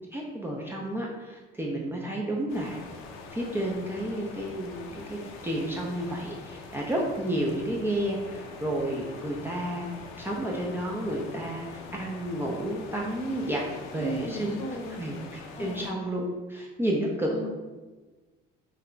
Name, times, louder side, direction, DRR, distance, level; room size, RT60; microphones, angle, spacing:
voice 1, 0.1-2.8 3.3-9.9 10.2-13.6 13.9-14.5 15.0-16.2 16.5-17.5, right 1 dB, 10° right, -3 dB, 0.4 m, -31 dB
sound 1, 2.5-15.9, left 4 dB, 80° left, 0.5 m, -44 dB
voice 2, 13.9-15.0 15.6-15.9 17.3-17.5, equal, 40° left, 1 dB, 0.8 m, -36 dB
3.3 x 2.2 x 3.8 m, 1.3 s
cardioid pair, 105°, 21 cm